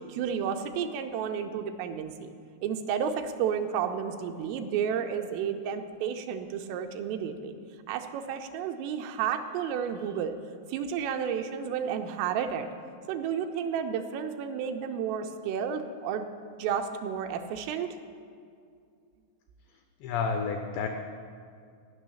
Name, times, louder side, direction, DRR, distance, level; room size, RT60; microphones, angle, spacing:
voice 1, 0.1-2.3 2.6-7.6 7.9-10.4 10.7-12.7 13.1-16.3 16.6-18.0, right 7 dB, 85° right, 6 dB, 3.2 m, -31 dB
voice 2, 20.0-20.9, left 5 dB, 85° left, 5 dB, 2.4 m, -30 dB
14.5 x 6.3 x 10.0 m, 2.3 s
omnidirectional pair, 5.9 m